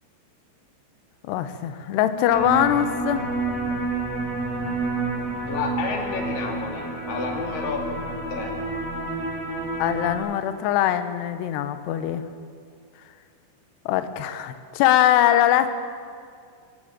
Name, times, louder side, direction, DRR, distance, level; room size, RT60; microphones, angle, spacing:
voice 1, 1.2-3.3 9.8-12.3 13.9-15.7, left 11 dB, 75° left, 10 dB, 2.8 m, -22 dB
sound 1, 2.3-10.1, right 3 dB, 20° right, 2.7 m, -29 dB
voice 2, 5.5-7.8 8.3-8.5, left 4 dB, 50° left, 1 dB, 3.8 m, -30 dB
23.0 x 15.0 x 9.0 m, 2.2 s
omnidirectional pair, 5.4 m